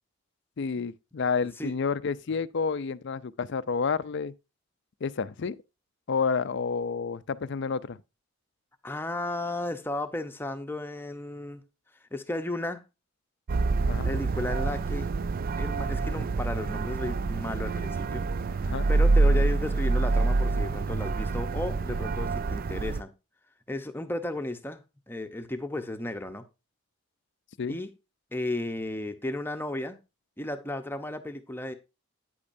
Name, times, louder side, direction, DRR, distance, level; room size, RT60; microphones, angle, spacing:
voice 1, 0.6-4.3 5.0-5.6 6.1-8.0 13.9-14.1 18.7-18.9 27.6-27.8, left 5 dB, 55° left, 0.4 m, -30 dB
voice 2, 8.8-11.6 12.1-12.8 14.0-15.1 15.6-18.2 18.6-23.1 23.7-24.8 25.1-26.4 27.7-27.9 28.3-30.0 30.4-31.7, left 1 dB, 10° left, 0.8 m, -34 dB
sound 1, 13.5-23.0, right 3 dB, 45° right, 0.4 m, -26 dB
9.4 x 8.5 x 2.6 m
head